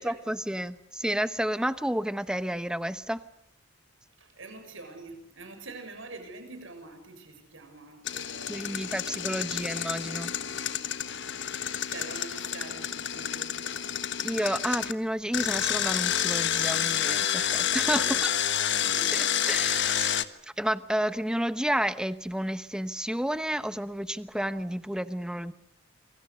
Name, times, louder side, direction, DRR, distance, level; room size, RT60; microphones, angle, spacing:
voice 1, 0.0-3.2 8.5-10.4 14.2-18.2 19.1-25.5, equal, 5° right, 12 dB, 1.0 m, -31 dB
voice 2, 4.2-9.0 9.3-9.6 11.4-13.8 17.9-18.2 18.8-19.4 24.6-24.7, right 3 dB, 70° right, 6 dB, 6.6 m, -45 dB
Engine, 8.0-14.9 15.3-20.2, left 10 dB, 60° left, 1.3 m, -29 dB
27.5 x 24.0 x 6.7 m, 0.71 s
head